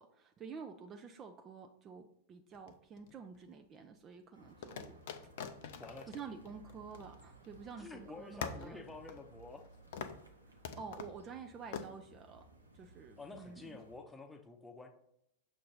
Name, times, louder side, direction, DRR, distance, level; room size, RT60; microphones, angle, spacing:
voice 1, 0.0-5.0 6.1-8.8 10.5-12.4 12.7-13.8, right 5 dB, 25° right, 5 dB, 0.4 m, -49 dB
sound 1, 2.5-3.4 4.6-7.6 7.9-8.0 8.4-9.7 9.9-10.3 10.6-11.2 11.7-11.9, left 7 dB, 55° left, 0.5 m, -45 dB
sound 2, 4.3-14.0, right 2 dB, 85° right, 0.8 m, -60 dB
voice 2, 5.8-6.1 7.8-9.6 13.2-14.9, left 3 dB, 10° left, 4 dB, 0.8 m, -50 dB
6.5 x 2.6 x 5.5 m, 0.76 s
figure-of-eight pair, 90°, 0 cm